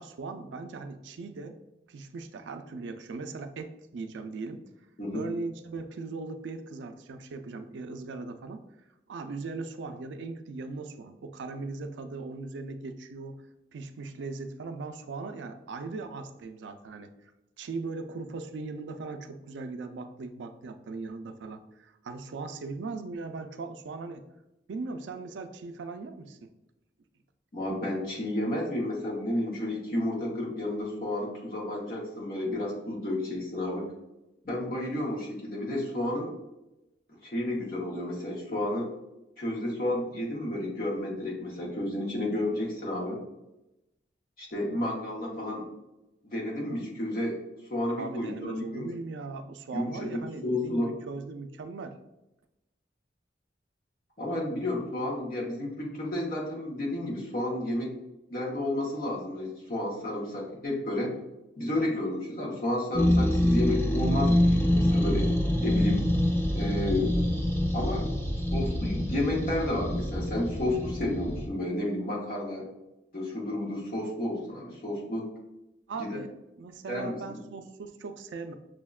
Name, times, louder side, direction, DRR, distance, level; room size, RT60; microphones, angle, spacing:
voice 1, 0.0-1.6 1.9-4.6 5.1-8.6 9.1-13.4 13.7-17.1 17.6-24.3 24.7-26.5 48.0-52.0 75.9-76.3 76.6-78.5, right 3 dB, 80° right, 8 dB, 0.4 m, -39 dB
voice 2, 5.0-5.3 27.5-33.9 34.4-36.3 37.2-38.9 39.4-43.2 44.4-45.7 46.2-47.4 47.7-48.9 49.7-50.9 54.2-57.9 58.3-61.1 61.6-65.3 65.6-66.1 66.5-67.2 67.7-68.1 68.5-72.7 73.1-75.3 76.0-76.2 76.9-77.4, left 1 dB, 50° left, -3 dB, 0.8 m, -31 dB
sound 1, 62.9-71.5, left 1 dB, 15° left, 0.4 m, -26 dB
6.1 x 2.1 x 2.3 m, 0.94 s
head